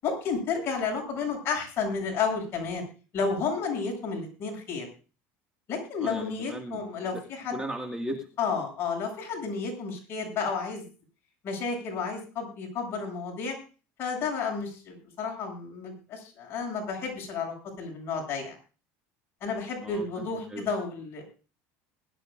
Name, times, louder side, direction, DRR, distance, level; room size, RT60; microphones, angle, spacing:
voice 1, 0.0-2.8 3.1-4.9 5.7-7.6 8.4-10.8 11.4-13.5 14.0-18.6 19.4-21.2, left 5 dB, 40° left, 1 dB, 7.8 m, -31 dB
voice 2, 6.0-6.8 7.1-7.2 7.5-8.2 19.8-20.7, right 1 dB, 10° right, 3 dB, 2.1 m, -36 dB
21.5 x 12.5 x 2.6 m, 0.35 s
cardioid pair, 135°, 6 cm